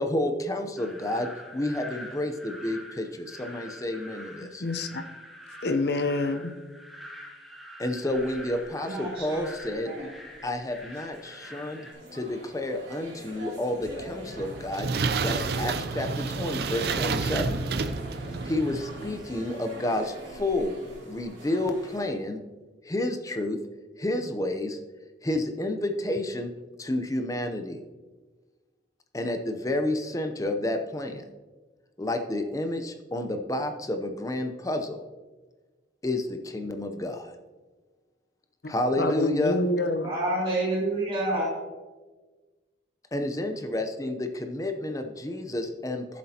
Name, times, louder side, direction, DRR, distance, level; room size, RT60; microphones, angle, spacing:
voice 1, 0.0-4.6 7.8-9.9 10.4-14.9 15.2-17.6 18.4-20.8 21.1-22.4 22.8-23.6 24.0-24.8 25.2-26.5 26.8-27.8 29.1-31.2 32.0-35.0 36.0-37.3 38.7-39.6 43.1-46.2, left 1 dB, 20° left, 6 dB, 0.6 m, -30 dB
sound 1, 0.8-11.9, left 1 dB, ahead, 1.4 m, -45 dB
voice 2, 4.6-5.0 5.6-6.4 38.6-40.1, left 2 dB, 60° left, 7 dB, 0.7 m, -27 dB
sound 2, 8.1-22.1, equal, 80° right, 2.8 m, -45 dB
voice 3, 8.8-9.5 9.8-10.1 40.0-41.5, right 1 dB, 30° right, -7 dB, 2.7 m, -28 dB
sound 3, 14.2-19.2, right 4 dB, 60° right, 0.4 m, -30 dB
14.0 x 7.6 x 2.8 m, 1.3 s
head